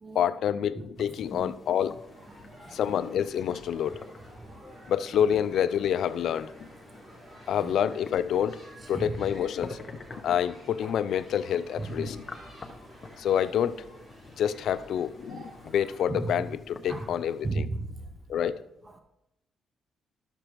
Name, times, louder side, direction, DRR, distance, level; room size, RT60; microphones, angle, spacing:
voice 1, 0.1-2.0 2.7-4.0 4.9-6.7 7.5-8.6 8.9-9.8 10.2-12.2 13.2-13.8 14.4-17.7 18.3-18.6, left 9 dB, 70° left, 0.4 m, -27 dB
sound 1, 0.9-17.5, left 3 dB, 35° left, 0.9 m, -48 dB
voice 2, 1.3-1.8 2.6-3.1 7.5-7.8 8.9-9.1 16.1-16.3 16.9-17.1 17.4-18.0 18.9-19.0, right 3 dB, 25° right, 0.6 m, -35 dB
sound 2, 2.0-16.1, right 1 dB, 50° right, 3.4 m, -51 dB
12.5 x 6.6 x 3.0 m
cardioid pair, 125°, 0 cm